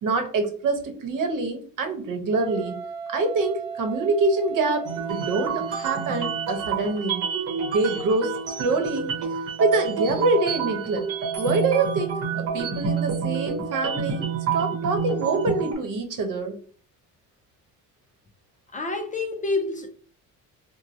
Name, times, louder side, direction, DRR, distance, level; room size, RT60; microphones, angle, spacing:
voice 1, 0.0-2.7 3.1-7.2 7.6-8.3 8.6-9.1 9.6-11.0 11.4-14.2 14.5-16.6, right 3 dB, 65° right, 0.9 m, -25 dB
Wind instrument woodwind instrument, 2.3-7.0, right 6 dB, 15° right, 1.5 m, -36 dB
sound 1, 4.9-15.7, right 6 dB, 40° right, 1.0 m, -28 dB
voice 2, 18.7-19.9, left 3 dB, 25° left, 0.4 m, -28 dB
4.2 x 2.2 x 2.7 m
cardioid pair, 140°, 35 cm